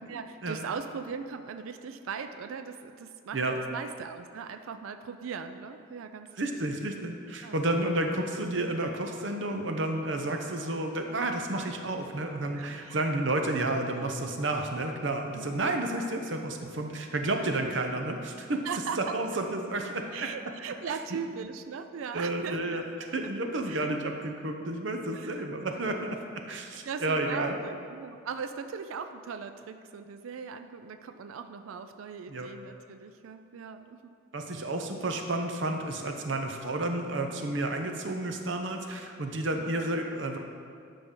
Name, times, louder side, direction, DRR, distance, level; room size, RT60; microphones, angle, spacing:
voice 1, 0.1-7.0 7.4-7.6 12.5-13.2 15.3-15.5 18.6-19.4 20.1-22.9 23.2-23.3 23.6-23.9 25.1-25.5 25.9-26.2 26.8-34.2, right 6 dB, 80° right, 9 dB, 0.4 m, -39 dB
voice 2, 6.4-18.6 19.1-20.0 22.1-22.8 23.1-26.2 26.5-27.5 32.3-32.5 34.3-40.4, right 2 dB, 65° right, 4 dB, 0.7 m, -31 dB
11.5 x 5.3 x 3.7 m, 2.3 s
head